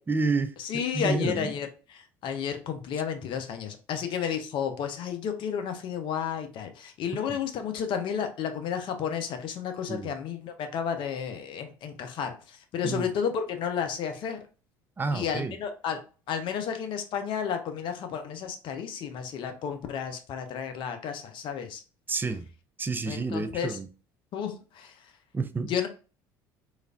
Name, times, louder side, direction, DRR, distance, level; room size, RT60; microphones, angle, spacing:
voice 1, 0.1-0.5 0.9-1.5 9.9-10.1 12.8-13.1 15.0-15.5 22.1-22.5 22.8-23.9 25.3-25.7, right 3 dB, 20° right, 0.4 m, -29 dB
voice 2, 0.6-14.4 15.1-16.0 16.3-21.8 23.1-23.8 24.3-25.0 25.7-25.9, left 7 dB, 55° left, 0.6 m, -32 dB
3.1 x 2.4 x 2.5 m
hypercardioid pair, 70°, 10 cm